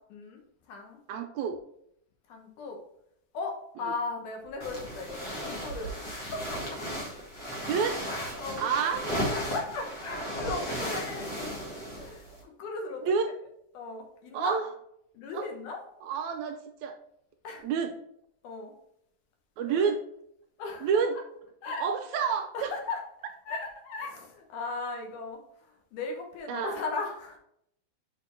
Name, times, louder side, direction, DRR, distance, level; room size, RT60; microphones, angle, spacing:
voice 1, 0.1-0.4 0.7-1.0 2.3-2.8 3.3-6.6 8.1-11.3 12.0-13.3 13.7-14.6 15.1-15.8 17.4-17.7 18.4-18.7 19.7-19.9 20.6-21.0 21.6-21.9 22.1-23.0 23.5-27.4, left 3 dB, 80° left, 2 dB, 2.7 m, -37 dB
voice 2, 1.1-1.6 7.7-8.0 8.6-9.1 13.0-13.3 14.3-14.6 15.3-15.5 16.0-17.0 17.6-17.9 19.6-20.0 20.8-21.2 21.8-22.7 26.5-26.8, right 6 dB, 75° right, 5 dB, 1.8 m, -28 dB
sound 1, 4.6-12.4, equal, 35° left, 1.8 m, -35 dB
6.4 x 4.4 x 4.4 m, 0.73 s
omnidirectional pair, 3.6 m